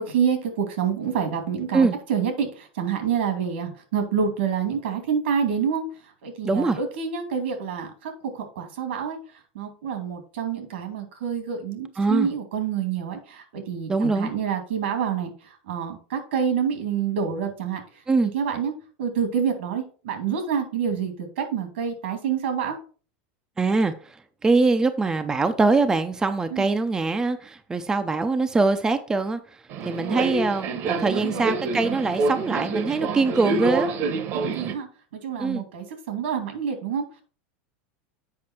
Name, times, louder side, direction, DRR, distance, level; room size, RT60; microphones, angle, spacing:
voice 1, 0.0-5.9 6.2-9.2 9.5-15.3 15.7-17.8 18.2-18.7 19.0-22.8 26.5-26.7 29.9-30.3 30.9-31.5 33.9-37.0, right 7 dB, 90° right, 6 dB, 2.5 m, -27 dB
voice 2, 6.4-6.8 12.0-12.3 13.9-14.3 18.1-18.3 23.6-23.9 24.4-29.4 29.8-33.9 35.4-35.6, right 3 dB, 10° right, 8 dB, 0.5 m, -22 dB
Subway metro underground, 29.7-34.7, right 3 dB, 40° right, 1.0 m, -27 dB
7.7 x 5.3 x 4.3 m, 0.38 s
supercardioid pair, 155°, 6 cm